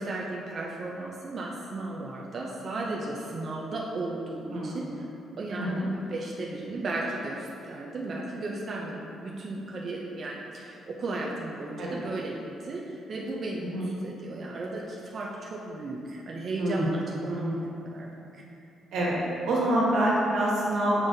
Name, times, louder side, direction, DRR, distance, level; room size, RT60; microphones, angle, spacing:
voice 1, 0.0-5.1 5.4-17.6 17.8-18.2, right 2 dB, 35° right, -3 dB, 0.4 m, -35 dB
voice 2, 5.6-5.9 11.7-11.9 13.6-13.9 16.6-17.0 17.3-17.6 18.9-19.2 19.5-21.1, right 1 dB, 80° right, -5 dB, 1.5 m, -26 dB
7.3 x 5.2 x 2.6 m, 2.7 s
cardioid pair, 180°, 0 cm